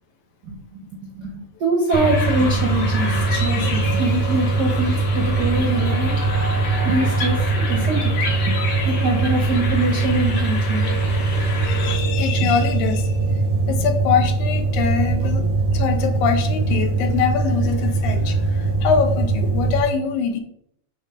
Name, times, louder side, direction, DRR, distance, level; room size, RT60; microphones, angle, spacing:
voice 1, 0.4-6.4 6.8-8.1 8.5-8.6 8.8-10.9 12.4-12.5 13.4-13.9, right 2 dB, 65° right, 0 dB, 1.0 m, -24 dB
sound 1, 1.9-12.0, left 4 dB, 60° left, 2.5 m, -30 dB
sound 2, 1.9-19.8, right 3 dB, 45° right, 0.7 m, -21 dB
sound 3, 2.0-14.1 14.3-14.4, right 7 dB, 85° right, 2.6 m, -37 dB
voice 2, 11.5-13.1 13.7-20.4, left 6 dB, 75° left, 5 dB, 2.3 m, -23 dB
8.7 x 3.1 x 5.1 m, 0.70 s
omnidirectional pair, 3.6 m